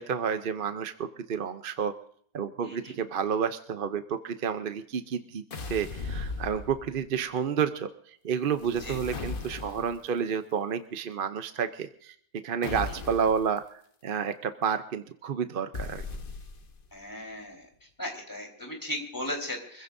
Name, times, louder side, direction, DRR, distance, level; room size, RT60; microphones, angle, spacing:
voice 1, 0.0-1.9 2.3-5.4 5.7-7.9 8.2-12.1 12.4-13.6 14.0-16.0, right 7 dB, 50° right, 9 dB, 0.7 m, -30 dB
voice 2, 2.6-3.0 8.8-9.0 12.6-13.0 16.9-17.7 18.0-19.8, left 1 dB, 15° left, 0 dB, 4.1 m, -37 dB
sound 1, 5.5-7.1 8.5-10.1 12.6-13.5 15.7-16.8, left 4 dB, 40° left, 1.2 m, -37 dB
25.5 x 15.5 x 2.6 m, 0.62 s
omnidirectional pair, 1.5 m